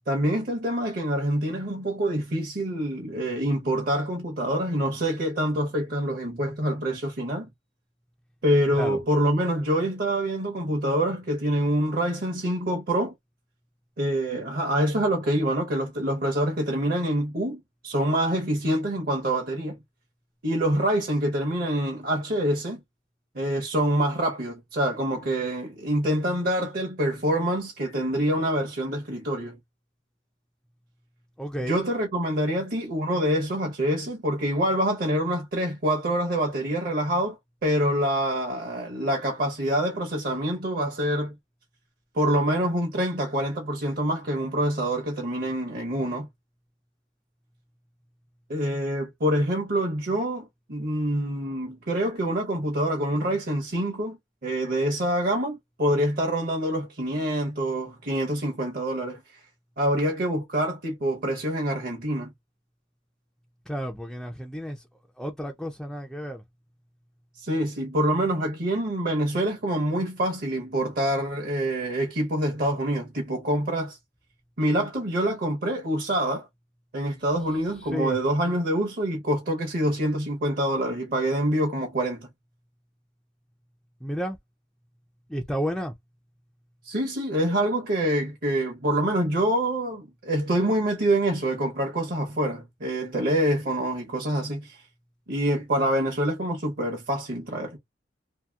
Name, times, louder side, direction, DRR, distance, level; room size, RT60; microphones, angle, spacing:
voice 1, 0.1-7.5 8.4-13.1 14.0-19.8 20.4-22.8 23.3-29.6 31.6-41.3 42.1-46.3 48.5-59.2 59.8-62.3 67.4-74.0 74.6-76.5 76.9-82.3 86.8-94.8 95.3-97.8, right 1 dB, 55° right, 0.9 m, -26 dB
voice 2, 31.4-31.8 63.7-64.9 65.2-66.4 77.3-78.2 84.0-84.4 85.3-85.9, equal, ahead, 0.4 m, -32 dB
2.8 x 2.8 x 2.3 m
head